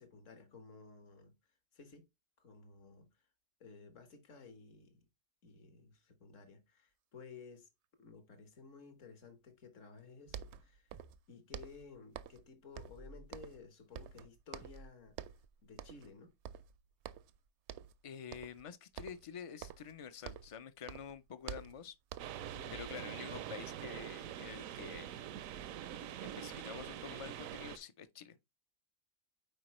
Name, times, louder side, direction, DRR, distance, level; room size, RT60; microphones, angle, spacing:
voice 1, 0.0-1.4 1.7-2.1 2.4-3.2 3.6-5.1 5.4-7.7 8.0-10.9 11.3-15.2 15.6-16.4 22.4-22.8, left 4 dB, 65° left, 1.7 m, -55 dB
sound 1, 10.0-10.1 10.3-11.2 11.5-12.5 12.8-13.7 13.9-14.9 15.1-15.5 15.8-16.1 16.4-17.4 17.7-18.0 18.3-18.7 19.0-20.6 20.9-22.5, right 9 dB, 65° right, 0.7 m, -48 dB
sound 2, 10.9-11.2 12.7-13.3 14.6-15.7, right 2 dB, 20° right, 0.4 m, -57 dB
voice 2, 18.0-21.9 22.7-25.1 26.4-28.4, left 7 dB, 50° left, 0.4 m, -48 dB
sound 3, 22.2-27.8, right 10 dB, 80° right, 1.0 m, -44 dB
9.1 x 4.3 x 3.1 m
omnidirectional pair, 1.4 m